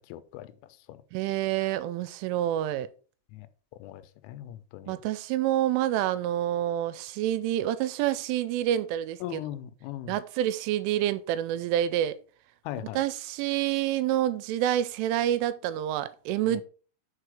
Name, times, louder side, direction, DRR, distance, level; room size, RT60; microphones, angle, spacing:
voice 1, 0.1-0.5 3.3-3.5 3.8-4.0 4.3-5.0 9.2-10.1 12.7-13.0 16.5-16.6, left 12 dB, 85° left, 3.2 m, -38 dB
voice 2, 1.1-2.9 4.9-9.4 10.1-12.2 12.8-16.6, right 12 dB, 85° right, 3.1 m, -28 dB
6.6 x 4.6 x 4.8 m
omnidirectional pair, 5.6 m